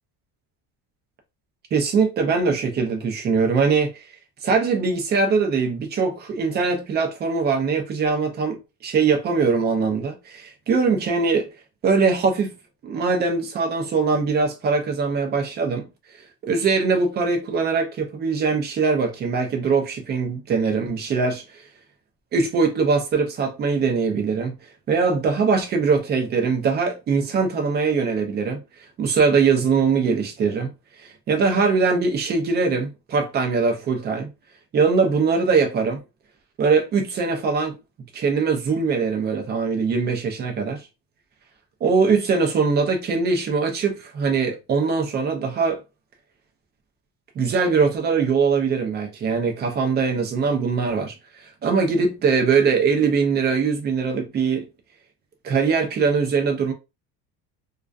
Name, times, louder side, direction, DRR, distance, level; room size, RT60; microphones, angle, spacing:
voice 1, 1.7-4.1 4.4-11.5 11.8-12.5 12.8-15.9 16.4-21.7 22.3-24.6 24.9-30.7 31.0-34.3 34.7-36.0 36.6-37.8 38.1-40.8 41.8-45.8 47.4-54.7 55.4-56.7, right 5 dB, 25° right, 0.3 m, -22 dB
2.4 x 2.3 x 2.2 m
cardioid pair, 165°, 44 cm